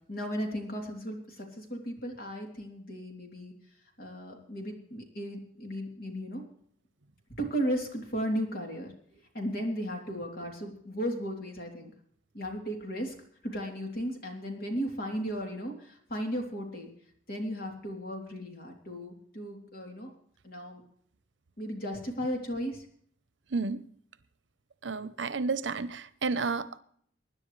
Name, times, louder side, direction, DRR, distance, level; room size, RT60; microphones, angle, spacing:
voice 1, 0.1-3.5 4.0-6.4 7.4-11.9 12.3-13.1 13.4-16.9 17.3-20.1 20.4-20.8 21.6-22.9, equal, 55° left, 2 dB, 3.3 m, -35 dB
voice 2, 23.5-23.8 24.8-26.8, right 4 dB, 75° right, 14 dB, 0.8 m, -31 dB
24.5 x 10.5 x 3.3 m, 0.62 s
head